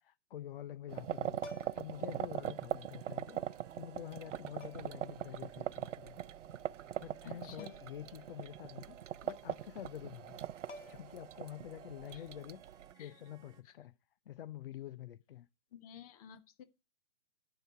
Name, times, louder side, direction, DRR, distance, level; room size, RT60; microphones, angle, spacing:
voice 1, 0.0-6.2 7.0-10.4 10.9-12.6 13.0-14.0 14.3-15.5, left 11 dB, 50° left, 0.4 m, -47 dB
sound 1, 0.9-12.9, right 10 dB, 80° right, 0.5 m, -42 dB
sound 2, 1.4-2.0 3.3-3.4 4.6-5.0 7.6-8.0 8.3-8.4 10.3-10.4 10.7-11.3 13.2-13.4, left 3 dB, 75° left, 1.0 m, -51 dB
sound 3, 1.9-13.6, right 8 dB, 10° right, 0.6 m, -63 dB
voice 2, 7.2-7.7 11.6-11.7 12.1-12.3 13.0-13.1 13.6-13.7 15.7-16.6, left 9 dB, 30° left, 1.0 m, -52 dB
10.5 x 4.8 x 5.7 m
figure-of-eight pair, 130°, 36 cm